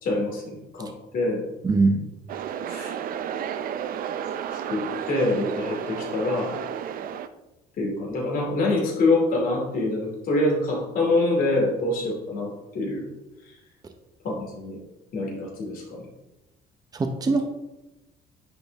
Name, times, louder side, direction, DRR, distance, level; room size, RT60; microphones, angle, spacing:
voice 1, 0.0-0.9 1.1-1.5 2.7-2.9 4.7-6.6 7.8-13.1 14.2-14.8 15.1-16.0, left 2 dB, 55° left, -2 dB, 2.6 m, -25 dB
voice 2, 1.6-2.0 17.0-17.5, right 3 dB, 20° right, 6 dB, 0.7 m, -21 dB
sound 1, 2.3-7.3, right 9 dB, 60° right, 0.5 m, -32 dB
9.6 x 3.9 x 3.5 m, 0.98 s
cardioid pair, 110°, 17 cm